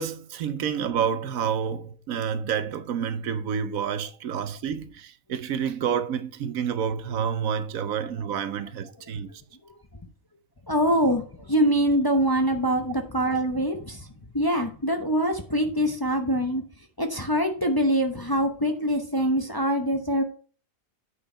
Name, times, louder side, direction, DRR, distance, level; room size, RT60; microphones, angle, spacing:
voice 1, 0.0-9.3, right 7 dB, 80° right, 1.2 m, -29 dB
voice 2, 10.7-16.6 17.0-20.2, equal, 20° left, 0.7 m, -24 dB
8.7 x 4.6 x 5.1 m
omnidirectional pair, 1.4 m